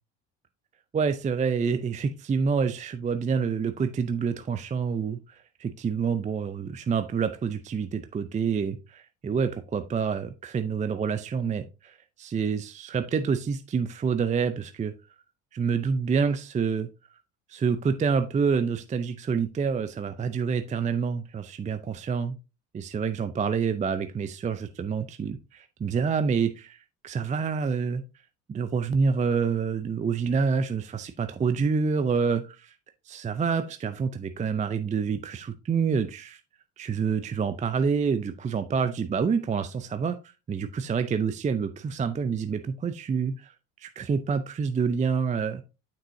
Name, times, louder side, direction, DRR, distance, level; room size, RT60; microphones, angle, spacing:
voice 1, 0.9-14.9 15.5-16.9 17.5-22.4 22.7-26.8 27.0-28.0 28.5-32.7 33.1-36.4 36.8-40.2 40.5-43.5 43.8-45.6, right 6 dB, 20° right, 10 dB, 0.5 m, -27 dB
7.4 x 6.0 x 2.7 m, 0.29 s
hypercardioid pair, 75°, 41 cm